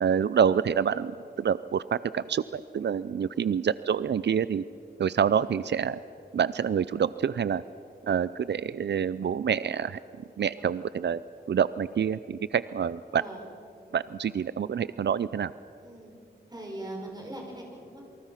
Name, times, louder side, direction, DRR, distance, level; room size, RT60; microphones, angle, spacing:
voice 1, 0.0-4.6 5.0-6.0 6.3-7.6 8.1-10.0 10.4-11.2 11.5-13.2 13.9-15.5, right 7 dB, 85° right, 16 dB, 0.4 m, -27 dB
voice 2, 13.1-13.4 15.8-16.1 16.5-18.0, right 1 dB, 25° right, -1 dB, 5.9 m, -41 dB
28.0 x 24.0 x 5.8 m, 2.7 s
wide cardioid pair, 100°, 18 cm